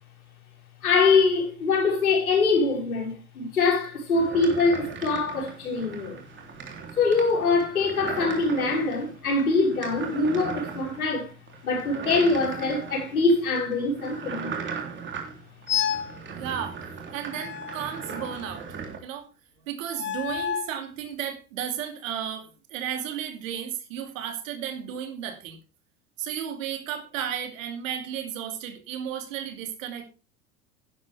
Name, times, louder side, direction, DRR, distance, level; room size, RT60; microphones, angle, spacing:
voice 1, 0.8-6.2 7.0-11.3 11.6-14.5, left 3 dB, 75° left, 5.8 m, -23 dB
sound 1, 4.1-19.0, right 6 dB, 25° right, 3.3 m, -38 dB
sound 2, 15.7-16.2 17.3-18.6 19.9-20.8, left 9 dB, 25° left, 1.2 m, -30 dB
voice 2, 16.4-16.9 17.1-18.7 19.0-19.3 19.7-25.6 26.2-30.1, right 9 dB, 60° right, 2.8 m, -33 dB
11.5 x 11.0 x 3.5 m
figure-of-eight pair, 80°, 43 cm